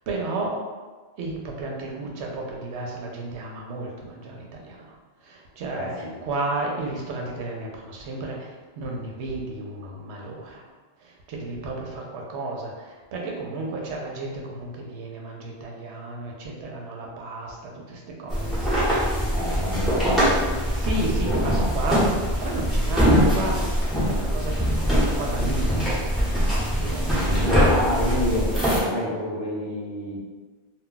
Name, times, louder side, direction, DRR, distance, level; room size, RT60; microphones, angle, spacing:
voice 1, 0.1-0.6 1.2-5.0 5.2-10.6 11.0-19.1 19.7-19.8 20.7-22.2 22.4-24.6 24.9-27.4, right 2 dB, 80° right, -1 dB, 0.9 m, -33 dB
voice 2, 5.7-6.1 19.3-20.5 21.2-21.7 27.2-30.2, left 1 dB, 50° left, -6 dB, 0.8 m, -29 dB
sound 1, 18.3-28.8, equal, ahead, 0.7 m, -22 dB
2.2 x 2.2 x 3.8 m, 1.4 s
omnidirectional pair, 1.1 m